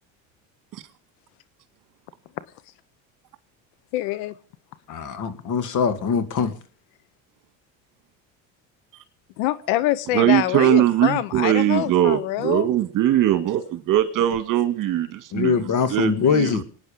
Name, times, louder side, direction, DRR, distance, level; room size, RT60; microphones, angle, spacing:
voice 1, 3.9-4.3 9.4-12.7, left 15 dB, 75° left, 1.0 m, -25 dB
voice 2, 4.9-6.5 15.3-16.6, left 6 dB, 50° left, 2.3 m, -22 dB
voice 3, 10.1-15.0 15.4-15.6 15.9-16.6, right 12 dB, 50° right, 2.1 m, -20 dB
26.0 x 9.5 x 5.1 m
supercardioid pair, 105°, 39 cm